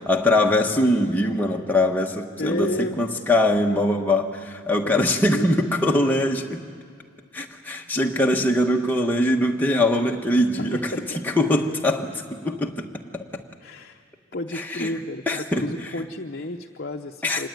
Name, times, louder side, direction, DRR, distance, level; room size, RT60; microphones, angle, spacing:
voice 1, 0.1-6.7 7.3-10.8 11.2-12.9 13.1-13.4 14.5-14.9 15.3-15.7 17.2-17.5, left 1 dB, 10° left, 0 dB, 1.3 m, -22 dB
voice 2, 2.4-3.0 4.8-5.5 10.5-11.2 13.6-14.0 14.3-17.5, left 2 dB, 50° left, 3 dB, 0.8 m, -31 dB
25.5 x 20.0 x 9.3 m, 2.1 s
head